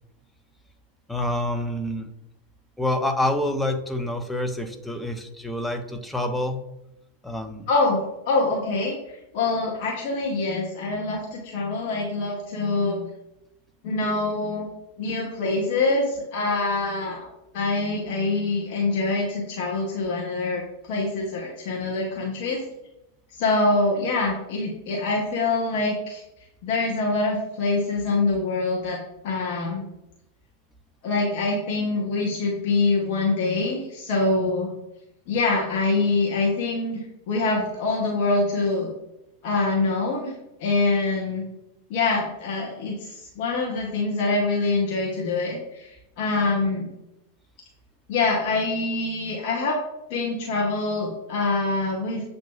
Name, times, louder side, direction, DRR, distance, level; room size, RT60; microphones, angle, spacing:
voice 1, 1.1-2.1 2.8-6.6 7.2-7.7, left 1 dB, 5° left, 5 dB, 0.5 m, -27 dB
voice 2, 7.7-9.0 9.3-13.1 13.8-14.7 15.0-17.3 17.5-22.6 23.4-26.2 26.6-29.0 29.2-29.8 31.0-34.7 35.3-37.0 37.3-38.9 39.4-40.3 40.6-41.4 41.9-45.9 46.2-46.9 48.1-49.8 50.1-52.2, left 3 dB, 50° left, -2 dB, 0.8 m, -25 dB
7.3 x 2.6 x 2.3 m, 0.88 s
figure-of-eight pair, 90°, 0 cm